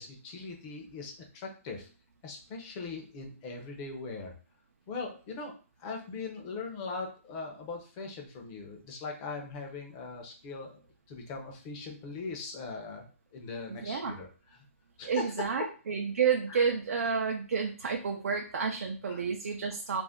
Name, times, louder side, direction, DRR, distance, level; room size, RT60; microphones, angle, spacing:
voice 1, 0.0-1.9 2.2-4.3 4.9-5.5 5.8-10.8 11.1-14.6 15.0-15.5 16.5-16.6 16.9-17.0 19.1-19.2, left 4 dB, 25° left, 2 dB, 0.6 m, -40 dB
voice 2, 13.7-14.1 15.0-20.0, right 6 dB, 80° right, 3 dB, 0.4 m, -30 dB
2.5 x 2.1 x 3.5 m, 0.37 s
hypercardioid pair, 160°, 8 cm